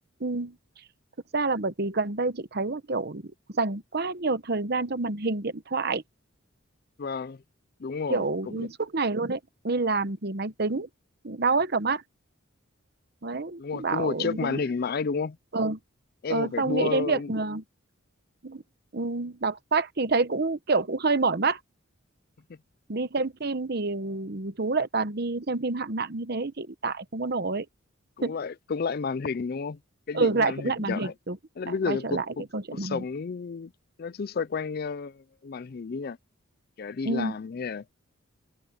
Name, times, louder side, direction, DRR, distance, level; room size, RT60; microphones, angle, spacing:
voice 1, 0.2-0.6 1.3-6.0 8.1-10.9 11.2-12.0 13.2-14.6 15.5-15.8 16.3-17.6 18.4-18.6 18.9-21.6 22.9-27.7 28.2-28.4 30.1-31.4 31.7-32.2 32.5-33.0 37.0-37.3, right 3 dB, 50° right, 1.0 m, -28 dB
voice 2, 7.0-7.4 7.8-8.3 8.6-8.7 13.6-15.4 16.2-17.3 28.2-29.8 30.1-31.1 31.6-32.4 32.7-33.7 34.0-36.2 36.8-37.8, left 5 dB, 45° left, 0.4 m, -31 dB
head